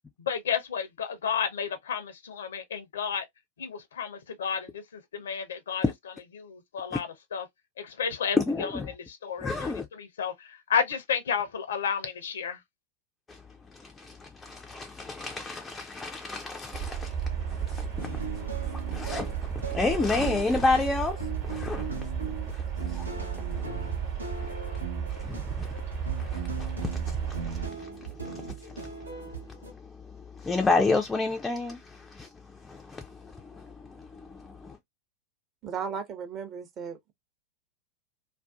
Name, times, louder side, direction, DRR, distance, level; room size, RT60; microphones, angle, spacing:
voice 1, 0.2-3.2 3.6-4.8 5.1-5.8 6.4-7.4 7.8-8.7 9.1-12.6, left 7 dB, 65° left, 0.5 m, -31 dB
voice 2, 8.4-8.9 9.4-9.9 13.3-13.4 13.7-17.2 17.4-22.0 22.5-23.7 24.4-24.5 25.1-25.7 26.2-32.3 32.6-34.8, left 3 dB, 10° left, 0.4 m, -31 dB
sound 1, 16.7-27.7, right 8 dB, 45° right, 1.0 m, -34 dB
sound 2, 18.0-29.7, right 4 dB, 80° right, 0.8 m, -39 dB
voice 3, 35.6-37.1, right 6 dB, 30° right, 0.6 m, -36 dB
2.5 x 2.2 x 2.2 m
figure-of-eight pair, 90°, 0 cm